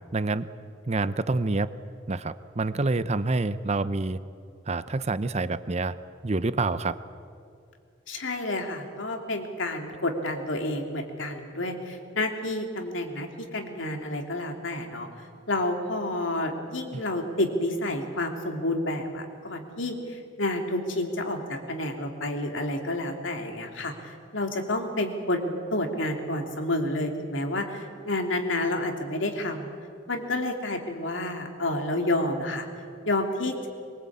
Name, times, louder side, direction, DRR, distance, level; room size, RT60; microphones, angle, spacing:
voice 1, 0.1-0.5 0.9-1.7 2.1-4.2 4.7-5.9 6.2-7.0 16.9-17.0, right 3 dB, 35° right, 14 dB, 0.7 m, -27 dB
voice 2, 8.1-15.1 15.5-29.7 30.1-32.7 33.0-33.7, left 1 dB, 80° left, 3 dB, 2.9 m, -29 dB
23.5 x 22.5 x 8.6 m, 2.4 s
head